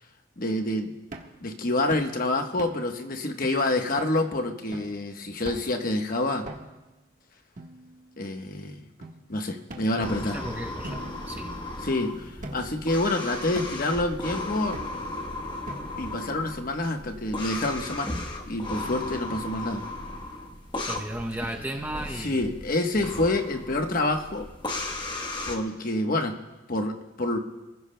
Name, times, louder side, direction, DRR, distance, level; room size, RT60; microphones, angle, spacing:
voice 1, 0.4-0.9 1.4-6.5 8.2-8.8 9.3-10.4 11.8-14.8 16.0-18.1 18.5-19.8 22.1-24.5 25.5-26.4 26.7-27.4, left 2 dB, 45° left, 4 dB, 1.1 m, -27 dB
sound 1, 1.1-1.4 1.9-2.1 2.6-3.0 3.4-3.5 4.0-4.2 4.7-5.0 5.4-5.8 6.4-6.9 7.6-8.3 9.0-9.1 9.7-10.4 10.8-11.9 12.4-12.9 13.5-13.9 14.7-15.2 15.7-16.2, right 1 dB, 40° right, 1.4 m, -42 dB
voice 2, 9.9-11.6 20.8-22.4 23.0-23.1, right 1 dB, 10° right, 2 dB, 0.7 m, -35 dB
sound 2, 10.0-25.6, left 2 dB, 25° left, 1.2 m, -36 dB
28.0 x 15.5 x 2.2 m, 1.1 s
head